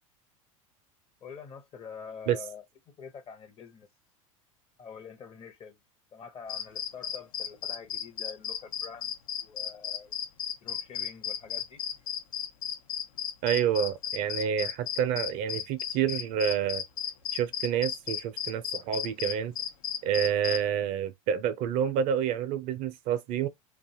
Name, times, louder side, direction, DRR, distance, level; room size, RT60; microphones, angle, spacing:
voice 1, 1.2-3.9 4.8-5.8 6.1-9.1 9.4-10.2 10.6-11.8, left 6 dB, 35° left, 0.7 m, -46 dB
sound 1, 6.5-20.6, left 10 dB, 85° left, 0.6 m, -34 dB
voice 2, 13.4-16.8 17.3-19.5 20.0-23.5, right 9 dB, 50° right, 0.4 m, -28 dB
2.6 x 2.3 x 2.7 m
hypercardioid pair, 85°, 18 cm